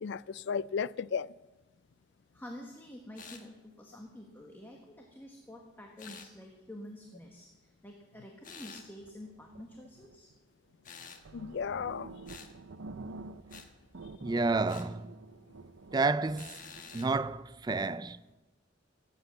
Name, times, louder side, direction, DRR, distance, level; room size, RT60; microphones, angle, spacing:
voice 1, 0.0-1.3 11.3-12.1, left 6 dB, 65° left, 0.4 m, -34 dB
voice 2, 2.3-10.3, left 1 dB, 10° left, 1.3 m, -48 dB
sound 1, 3.2-3.5 6.0-6.3 8.4-8.9 10.8-11.3 12.3-12.5 13.5-13.7 14.7-14.9 16.4-17.1, left 6 dB, 45° left, 1.3 m, -49 dB
sound 2, 8.6-10.4 10.9-11.0 11.2-13.7 13.9-17.0, right 3 dB, 90° right, 0.7 m, -48 dB
voice 3, 14.2-15.1 15.9-16.6 16.9-18.2, right 3 dB, 20° right, 0.4 m, -30 dB
17.5 x 8.0 x 7.9 m
head